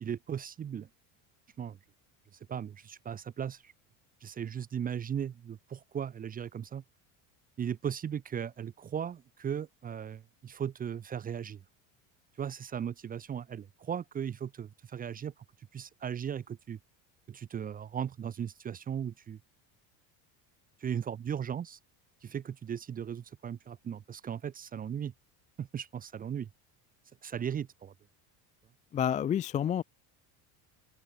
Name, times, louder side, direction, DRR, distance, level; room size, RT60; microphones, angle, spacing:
voice 1, 0.0-0.9 1.6-1.8 2.5-3.7 4.2-6.8 7.6-11.6 12.4-15.3 15.7-16.8 17.3-19.4 20.8-21.8 22.2-25.1 25.6-26.5 27.2-27.9, right 8 dB, 20° right, 0.8 m, -37 dB
voice 2, 28.9-29.8, left 9 dB, 20° left, 0.4 m, -29 dB
cardioid pair, 160°, 40 cm